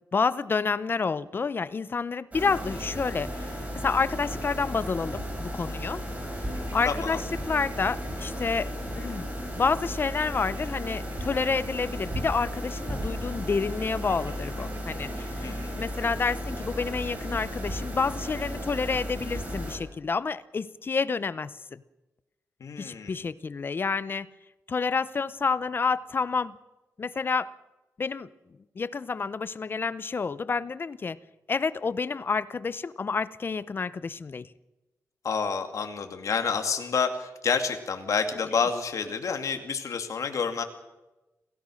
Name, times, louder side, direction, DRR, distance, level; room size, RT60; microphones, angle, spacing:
voice 1, 0.1-6.0 6.7-8.7 8.9-9.3 9.6-21.8 22.8-24.3 24.7-26.6 27.0-27.5 28.0-28.3 28.8-31.2 31.5-34.5, left 5 dB, 40° left, 17 dB, 0.7 m, -29 dB
sound 1, 2.3-19.8, equal, 25° right, 6.0 m, -34 dB
sound 2, 6.5-8.8 9.8-18.3, right 3 dB, 45° right, 6.7 m, -55 dB
voice 2, 6.8-7.2 15.4-15.8 22.6-23.3 35.2-40.6, left 5 dB, 65° left, 6 dB, 2.4 m, -29 dB
27.5 x 17.0 x 6.4 m, 1.0 s
wide cardioid pair, 160°, 6 cm